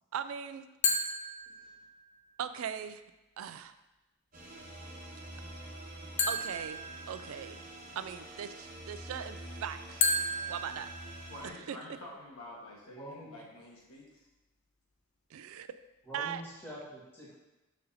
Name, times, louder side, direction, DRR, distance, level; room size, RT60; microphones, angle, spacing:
voice 1, 0.1-0.7 2.4-3.0 3.4-3.7 6.3-6.8 7.1-7.6 8.0-10.2 10.5-10.9 11.7-11.8 15.3-15.7 16.1-16.4, right 8 dB, 80° right, 11 dB, 0.3 m, -39 dB
sound 1, 0.8-2.1 6.2-7.7 10.0-11.7, left 2 dB, 35° left, 0.5 m, -33 dB
sound 2, 4.3-11.5, right 1 dB, 40° right, 1.2 m, -47 dB
voice 2, 11.3-14.2, left 1 dB, 90° left, -3 dB, 1.5 m, -48 dB
voice 3, 12.9-13.4 16.0-17.3, equal, 10° left, -8 dB, 1.9 m, -46 dB
6.6 x 5.3 x 2.8 m, 1.0 s
head